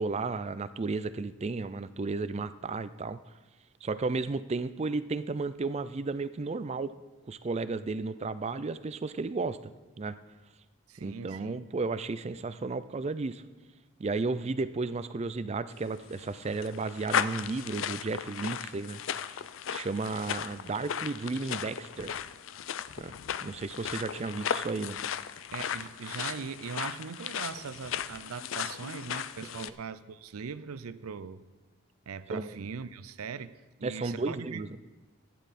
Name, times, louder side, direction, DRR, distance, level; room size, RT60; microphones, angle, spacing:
voice 1, 0.0-3.2 3.8-6.9 7.3-9.7 10.0-10.2 11.0-13.4 14.0-19.0 19.7-22.2 23.0-23.1 23.4-25.0 29.6-29.7 32.3-32.6 33.8-34.7, right 3 dB, 30° right, 0.4 m, -33 dB
voice 2, 10.9-11.7 25.5-31.4 32.1-34.6, right 6 dB, 85° right, 0.5 m, -40 dB
sound 1, 15.8-29.7, left 8 dB, 60° left, 0.4 m, -36 dB
14.5 x 10.0 x 4.2 m
head